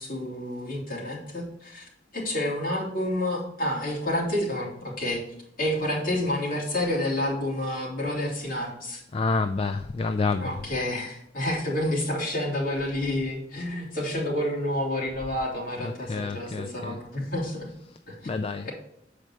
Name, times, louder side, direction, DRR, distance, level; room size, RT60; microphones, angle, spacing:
voice 1, 0.0-5.2 5.6-9.0 10.4-17.7 18.1-18.3 18.6-18.7, left 1 dB, 50° left, 2.8 m, -29 dB
voice 2, 9.1-10.6 15.8-17.0 17.9-18.0 18.2-18.7, left 4 dB, 30° left, 0.3 m, -28 dB
7.4 x 5.1 x 4.5 m
head